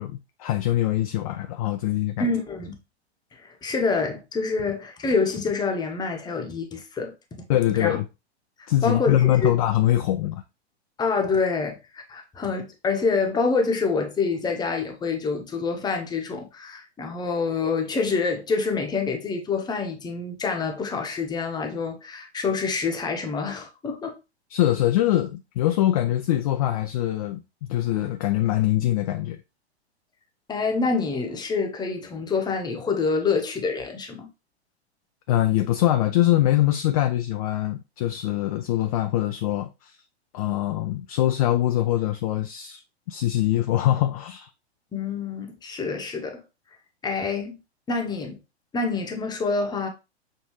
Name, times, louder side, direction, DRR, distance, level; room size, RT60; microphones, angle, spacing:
voice 1, 0.0-2.3 7.5-8.0 8.7-10.4 24.5-27.4 27.7-29.4 35.3-40.0 40.3-42.8 43.1-44.5, left 13 dB, 35° left, 0.4 m, -23 dB
voice 2, 2.2-2.7 3.4-7.1 7.7-8.0 8.8-9.5 11.0-24.1 30.5-34.3 44.9-46.4 47.0-47.5 47.9-48.4 48.7-49.9, left 4 dB, 10° left, 0.9 m, -26 dB
6.4 x 2.7 x 3.1 m
figure-of-eight pair, 110°, 33 cm